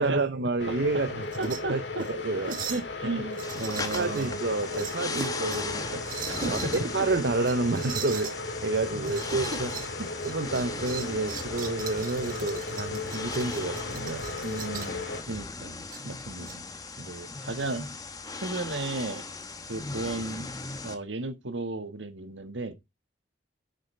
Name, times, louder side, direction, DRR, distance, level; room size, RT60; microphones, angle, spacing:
voice 1, 0.0-1.8 2.1-2.5 3.9-8.3 8.6-9.7 10.2-14.2 17.0-17.3, right 3 dB, 65° right, 0.8 m, -29 dB
sound 1, 0.6-15.2, left 2 dB, 75° left, 1.9 m, -36 dB
sound 2, 1.2-1.6 2.0-2.1 2.5-2.9 3.3-4.3 4.7-5.7 6.0-6.8 7.4-8.4 9.0-9.9 10.2-15.0 15.9-16.5, right 9 dB, 50° right, 1.3 m, -41 dB
voice 2, 1.4-2.1 2.5-4.4 4.7-4.8 6.3-6.7 8.9-9.2 9.5-9.6 10.0-10.1 14.4-15.8 16.0-16.6 17.4-17.9 18.3-19.2 19.7-20.5 20.8-22.7, right 2 dB, 85° right, 1.4 m, -34 dB
sound 3, 3.4-21.0, left 3 dB, 20° left, 1.0 m, -38 dB
9.9 x 6.6 x 3.2 m
head